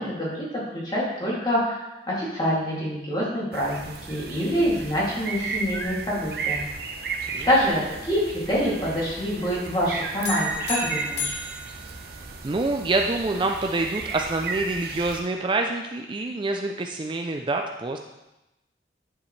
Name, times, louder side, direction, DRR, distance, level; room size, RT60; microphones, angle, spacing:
voice 1, 0.0-6.7 7.5-11.4, equal, 25° left, -6 dB, 2.6 m, -26 dB
sound 1, 3.5-15.2, right 4 dB, 60° right, 0.9 m, -34 dB
sound 2, 10.2-12.7, left 4 dB, 85° left, 1.5 m, -34 dB
voice 2, 12.4-18.0, right 2 dB, 25° right, 3 dB, 0.4 m, -26 dB
9.7 x 7.2 x 3.2 m, 0.96 s
head